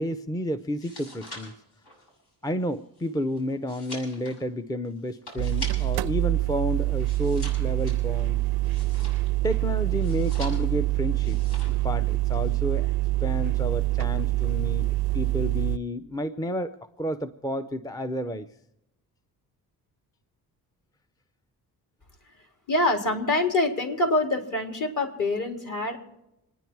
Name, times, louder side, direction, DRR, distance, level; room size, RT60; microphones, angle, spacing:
voice 1, 0.0-1.5 2.4-8.4 9.4-11.4 11.7-12.9 13.2-18.5, equal, 10° left, 10 dB, 0.5 m, -31 dB
sound 1, 0.6-6.1 6.4-9.5 10.0-10.9 11.2-11.9 12.1-12.5, left 1 dB, 75° left, 7.5 m, -44 dB
sound 2, 5.4-15.8, right 18 dB, 70° right, 0.5 m, -25 dB
voice 2, 22.7-26.0, left 2 dB, 50° left, 3 dB, 3.8 m, -25 dB
27.0 x 10.0 x 4.6 m, 0.87 s
cardioid pair, 110°, 39 cm